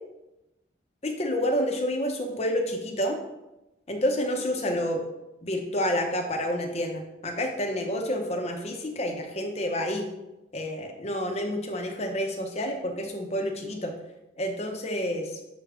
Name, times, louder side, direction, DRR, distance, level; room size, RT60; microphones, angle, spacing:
voice 1, 1.0-3.2 3.9-5.0 5.4-10.1 10.5-13.9 14.4-15.4, equal, 35° left, 3 dB, 0.8 m, -29 dB
6.7 x 3.4 x 5.0 m, 0.99 s
head